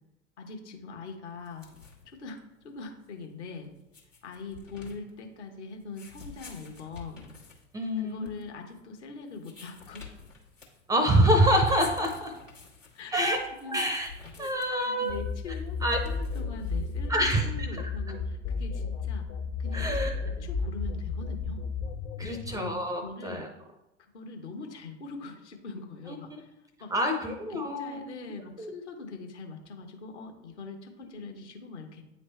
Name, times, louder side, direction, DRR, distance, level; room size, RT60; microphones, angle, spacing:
voice 1, 0.4-1.7 2.1-3.7 4.2-7.2 8.0-10.1 12.9-13.3 13.6-13.8 14.4-14.5 14.8-19.2 19.6-20.1 20.4-21.6 22.2-23.5 24.1-26.5 26.8-26.9 27.5-32.0, left 4 dB, 65° left, 3 dB, 1.1 m, -42 dB
sound 1, 1.4-17.3, left 5 dB, 90° left, 1.4 m, -50 dB
voice 2, 7.7-8.3 10.9-12.3 13.1-13.4 13.7-14.1 14.4-15.2 15.8-16.0 17.1-17.7 19.7-20.1 22.2-23.5 26.1-26.2 26.9-28.0 28.6-28.7, right 1 dB, 10° right, 4 dB, 0.4 m, -26 dB
sound 2, 15.1-22.7, left 4 dB, 35° left, 0.6 m, -33 dB
8.9 x 3.2 x 3.2 m, 0.92 s
figure-of-eight pair, 80°, 37 cm